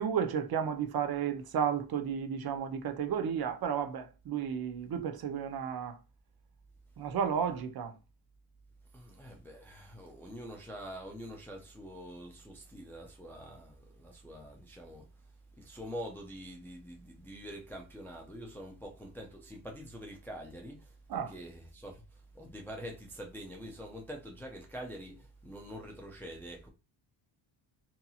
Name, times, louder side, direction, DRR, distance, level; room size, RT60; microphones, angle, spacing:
voice 1, 0.0-6.0 7.0-7.9 21.1-21.3, right 7 dB, 55° right, 0.6 m, -33 dB
voice 2, 8.9-15.1 15.6-20.9 21.3-22.0 22.3-26.7, equal, 5° left, 0.3 m, -45 dB
2.8 x 2.7 x 2.3 m
cardioid pair, 140°, 46 cm